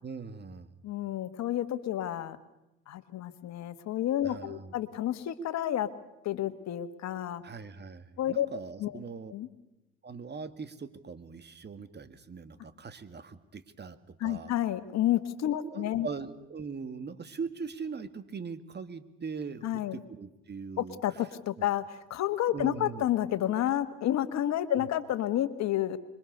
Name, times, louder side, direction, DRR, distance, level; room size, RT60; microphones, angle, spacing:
voice 1, 0.0-0.7 4.2-4.7 7.4-9.3 10.0-14.5 15.6-21.0 21.6-21.7 22.5-23.1 24.8-24.9, right 5 dB, 35° right, 12 dB, 2.1 m, -41 dB
voice 2, 0.8-2.4 2.9-5.9 6.2-7.4 8.2-8.5 8.8-8.9 9.3-9.5 14.2-16.1 19.6-20.0 20.8-26.0, left 12 dB, 65° left, 12 dB, 1.8 m, -30 dB
26.0 x 23.5 x 6.8 m, 0.93 s
hypercardioid pair, 65°, 29 cm